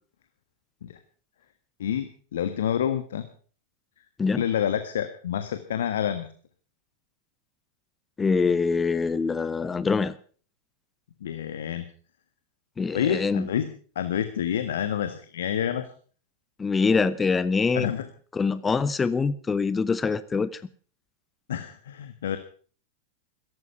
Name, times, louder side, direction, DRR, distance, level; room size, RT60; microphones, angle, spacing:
voice 1, 1.8-3.3 4.3-6.3 11.2-11.8 12.9-13.7 13.9-15.9 17.7-18.1 21.5-22.4, left 9 dB, 60° left, 10 dB, 1.4 m, -28 dB
voice 2, 8.2-10.1 12.8-13.5 16.6-17.9 18.3-20.6, left 4 dB, 15° left, 16 dB, 0.8 m, -24 dB
16.5 x 15.0 x 5.7 m, 0.43 s
figure-of-eight pair, 90°, 0 cm